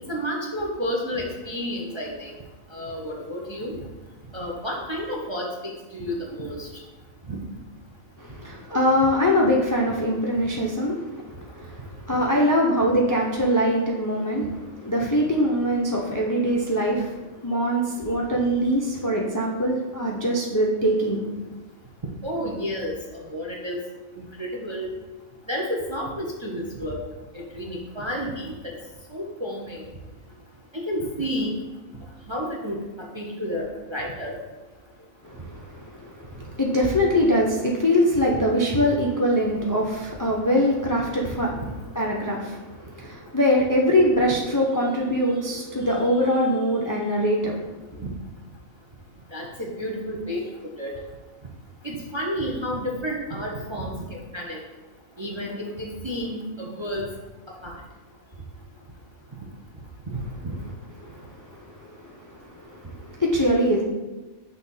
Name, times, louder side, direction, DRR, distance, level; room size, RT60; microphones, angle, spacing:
voice 1, 0.1-2.3 2.7-3.8 4.3-5.5 5.9-6.7 7.3-7.4 22.2-23.9 24.1-24.9 25.5-27.0 27.3-28.5 29.1-29.8 30.7-31.6 32.3-32.8 33.1-33.6 33.9-34.3 41.6-41.7 48.0-48.1 49.3-50.4 50.8-50.9 51.8-54.6 55.2-57.0 57.6-57.7 60.4-60.5, equal, 30° right, -1 dB, 0.5 m, -30 dB
voice 2, 8.2-21.3 35.2-41.6 41.9-47.6 61.1-63.8, equal, 30° left, -2 dB, 0.3 m, -23 dB
6.3 x 2.8 x 5.4 m, 1.2 s
omnidirectional pair, 1.4 m